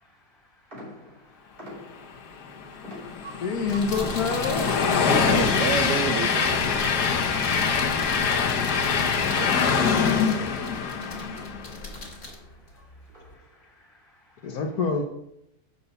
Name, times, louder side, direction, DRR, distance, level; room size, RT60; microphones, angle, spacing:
voice 1, 0.3-3.3 6.9-14.6, left 1 dB, 25° left, -2 dB, 3.9 m, -54 dB
sound 1, 0.7-2.3 2.8-3.6 4.0-9.6 9.8-11.9 12.2-12.6 13.1-13.6, left 1 dB, 35° right, 3.0 m, -46 dB
Train, 2.4-11.8, left 6 dB, 90° left, 1.4 m, -24 dB
voice 2, 3.4-4.8 14.4-15.0, left 4 dB, 70° left, 3 dB, 1.4 m, -26 dB
sound 2, 3.5-13.3, left 2 dB, 55° left, 2.5 m, -40 dB
voice 3, 5.1-7.2 8.0-8.6 9.4-10.2, right 6 dB, 70° right, 8 dB, 0.6 m, -32 dB
6.9 x 5.3 x 6.9 m, 0.78 s
omnidirectional pair, 1.7 m